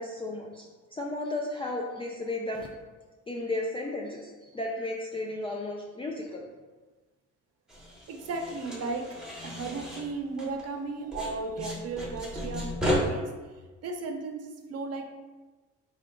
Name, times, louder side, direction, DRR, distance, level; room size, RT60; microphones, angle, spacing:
voice 1, 0.0-2.7 3.3-6.4, left 2 dB, 20° left, -2 dB, 0.3 m, -34 dB
sound 1, 7.7-10.8 11.1-13.0, left 1 dB, ahead, 0.8 m, -35 dB
voice 2, 8.1-9.1 9.4-13.3 13.8-15.2, right 3 dB, 55° right, 4 dB, 0.6 m, -35 dB
3.7 x 2.2 x 3.6 m, 1.3 s
cardioid pair, 90°, 30 cm